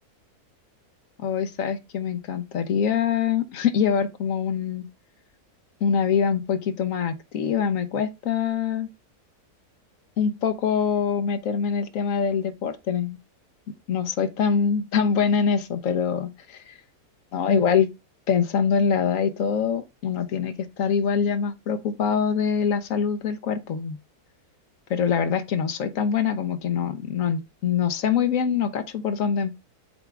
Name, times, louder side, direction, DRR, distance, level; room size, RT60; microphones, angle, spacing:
voice 1, 1.2-4.9 5.8-8.9 10.2-13.2 13.9-16.7 17.3-17.9 18.3-24.0 24.9-29.5, left 7 dB, 65° left, 1.1 m, -24 dB
8.0 x 3.6 x 3.4 m
omnidirectional pair, 1.6 m